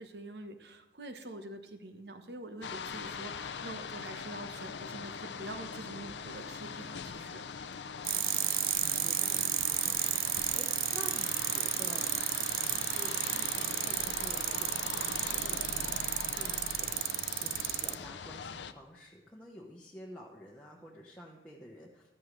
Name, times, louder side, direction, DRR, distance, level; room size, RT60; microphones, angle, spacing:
voice 1, 0.0-7.4, right 1 dB, 70° right, 7 dB, 1.2 m, -45 dB
sound 1, 2.6-18.7, left 6 dB, 80° left, 0.6 m, -41 dB
sound 2, 8.0-17.9, right 13 dB, 50° right, 0.4 m, -32 dB
voice 2, 8.2-12.2 12.6-16.0 16.3-22.1, equal, 5° left, -4 dB, 1.0 m, -50 dB
14.0 x 13.0 x 3.3 m, 0.96 s
head